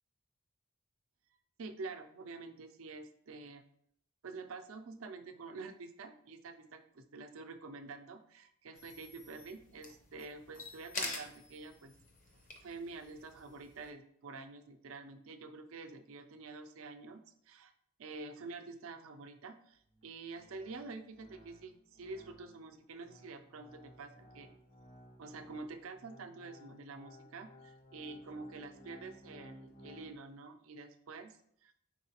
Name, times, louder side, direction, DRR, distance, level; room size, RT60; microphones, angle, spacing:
voice 1, 1.6-3.6 4.2-11.9 12.6-17.7 18.0-24.5 25.2-31.7, right 3 dB, 70° right, 7 dB, 0.5 m, -48 dB
sound 1, 8.8-13.9, left 3 dB, 35° left, 0.6 m, -46 dB
sound 2, 19.7-30.2, left 1 dB, 85° left, 1.5 m, -58 dB
4.7 x 3.8 x 2.8 m, 0.68 s
head